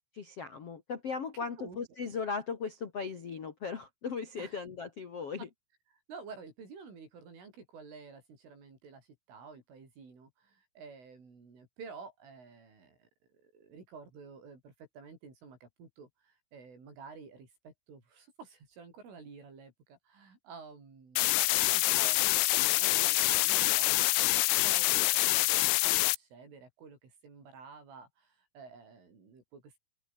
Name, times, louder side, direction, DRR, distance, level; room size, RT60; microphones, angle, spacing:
voice 1, 0.1-5.5, left 5 dB, 50° left, 1.8 m, -37 dB
voice 2, 6.1-13.1 13.4-29.8, right 5 dB, 70° right, 10.0 m, -51 dB
sound 1, 21.2-26.2, left 21 dB, 85° left, 3.2 m, -26 dB
open air
omnidirectional pair, 5.8 m